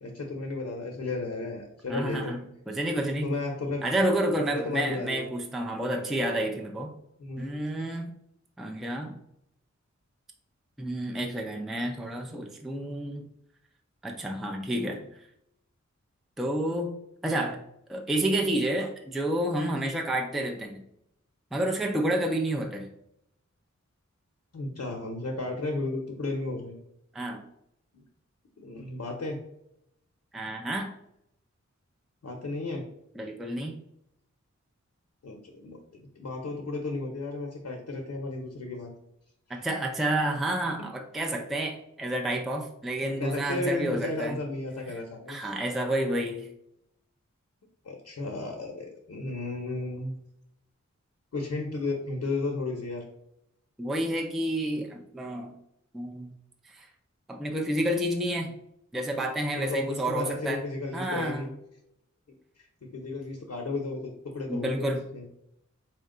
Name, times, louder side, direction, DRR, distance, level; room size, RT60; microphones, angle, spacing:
voice 1, 0.0-2.4 3.2-3.9 4.5-5.3 7.2-7.5 24.5-26.8 27.9-28.0 28.6-29.4 32.2-32.9 35.2-38.9 43.0-45.4 47.8-50.1 51.3-53.0 59.5-61.5 62.6-65.2, left 2 dB, 65° left, 1 dB, 0.7 m, -34 dB
voice 2, 1.9-3.3 3.8-6.9 7.4-8.1 8.6-9.2 10.8-13.2 14.0-15.1 16.4-16.9 17.2-17.6 17.9-20.8 21.5-22.9 27.1-27.4 30.3-30.9 33.2-33.8 39.5-44.4 44.9-45.0 45.3-46.5 53.8-55.5 55.9-56.3 56.7-56.9 57.3-58.5 58.9-60.7 60.9-61.5 64.5-65.0, right 1 dB, ahead, 2 dB, 0.4 m, -30 dB
4.4 x 2.1 x 3.7 m, 0.77 s
wide cardioid pair, 70°, 29 cm